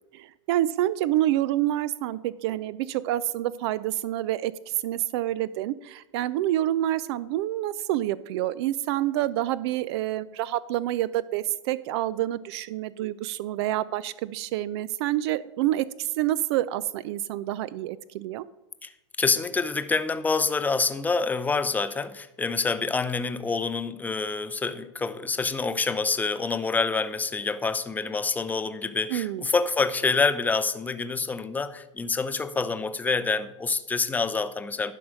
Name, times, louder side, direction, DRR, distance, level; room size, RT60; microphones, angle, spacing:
voice 1, 0.1-18.4 29.1-29.4, right 14 dB, 55° right, 0.4 m, -28 dB
voice 2, 19.2-34.9, left 4 dB, 10° left, 0.5 m, -27 dB
11.5 x 4.8 x 6.3 m
hypercardioid pair, 120°, 16 cm